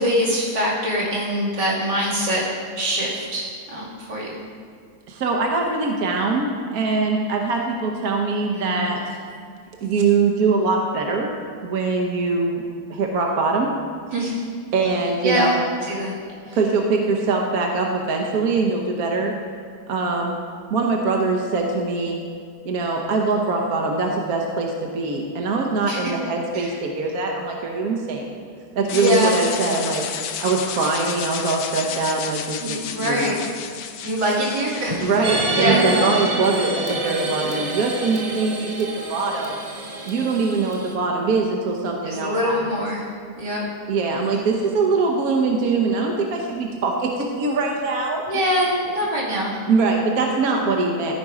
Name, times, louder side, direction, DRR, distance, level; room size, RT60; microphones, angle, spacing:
voice 1, 0.0-2.4 2.8-4.4 8.5-8.9 14.1-14.5 15.2-15.5 15.8-16.1 16.5-16.6 25.9-26.0 26.5-26.8 28.9-29.4 32.6-33.3 34.0-35.0 35.6-36.1 42.1-43.1 43.4-43.7 48.3-49.6, equal, 85° right, -7 dB, 3.1 m, -23 dB
voice 2, 5.1-9.0 9.8-11.3 11.6-12.6 12.9-13.7 14.7-15.5 16.5-19.3 19.9-20.4 20.7-22.2 22.6-28.3 28.7-30.0 30.4-33.4 35.0-39.6 40.0-42.6 43.9-48.2 49.7-51.1, right 3 dB, 65° right, 1 dB, 1.3 m, -22 dB
sound 1, 28.9-36.9, left 8 dB, 85° left, 1.3 m, -32 dB
sound 2, 35.2-40.9, right 2 dB, 45° right, 0.4 m, -27 dB
14.0 x 5.1 x 4.8 m, 2.2 s
omnidirectional pair, 1.8 m